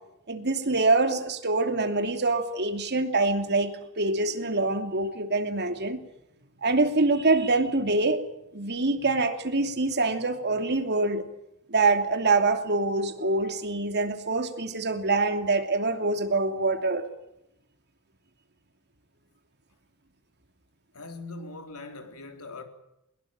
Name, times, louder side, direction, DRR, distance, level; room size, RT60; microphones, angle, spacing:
voice 1, 0.3-6.0 6.6-8.2 8.5-11.2 11.7-17.1, right 3 dB, 50° right, 2.8 m, -25 dB
voice 2, 20.9-22.6, left 3 dB, 80° left, 3.8 m, -41 dB
22.5 x 21.5 x 8.9 m
head